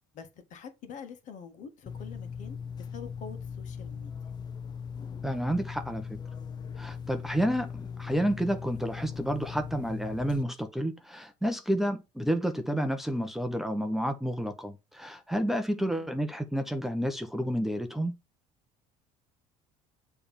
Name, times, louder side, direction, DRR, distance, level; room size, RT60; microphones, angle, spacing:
voice 1, 0.1-4.1 15.8-16.1, left 6 dB, 60° left, 1.6 m, -46 dB
sound 1, 1.9-10.4, left 6 dB, 30° left, 0.4 m, -39 dB
voice 2, 5.2-6.2 6.8-18.1, equal, ahead, 0.8 m, -30 dB
6.9 x 3.4 x 5.4 m
cardioid pair, 115°, 15 cm